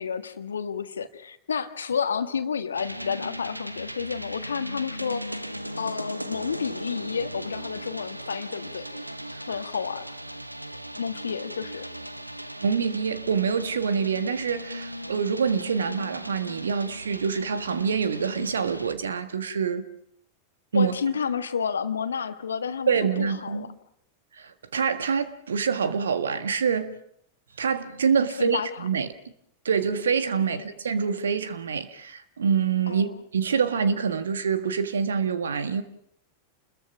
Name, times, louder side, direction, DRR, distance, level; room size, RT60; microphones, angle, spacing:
voice 1, 0.0-5.4 5.7-8.8 9.5-10.0 11.0-11.9 20.7-23.7 28.4-28.7 30.5-30.7 32.9-33.1, left 6 dB, 70° left, 1.5 m, -30 dB
sound 1, 2.7-18.9, equal, 90° right, 1.0 m, -37 dB
voice 2, 12.6-19.9 20.7-21.0 22.9-23.7 24.4-27.0 27.6-29.1 29.6-35.8, right 6 dB, 70° right, 1.6 m, -26 dB
29.5 x 21.5 x 6.1 m
figure-of-eight pair, 90°, 0 cm